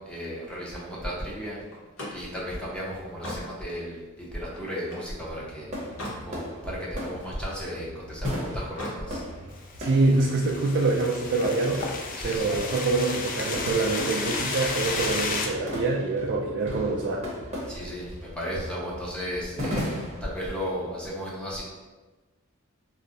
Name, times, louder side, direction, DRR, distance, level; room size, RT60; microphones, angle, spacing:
voice 1, 0.0-1.6 2.1-5.7 6.3-9.2 12.2-12.5 17.7-21.6, equal, 5° left, -6 dB, 0.6 m, -34 dB
Slam, 1.7-5.1 5.6-6.3 6.7-7.8 8.6-9.0, left 1 dB, 70° left, 0.9 m, -40 dB
sound 1, 5.1-20.4, equal, 30° right, 0.7 m, -38 dB
sound 2, 9.7-15.5, left 4 dB, 40° left, 0.3 m, -32 dB
voice 2, 9.8-11.9 12.2-17.2, right 3 dB, 55° right, -3 dB, 0.3 m, -25 dB
2.6 x 2.0 x 3.8 m, 1.2 s
head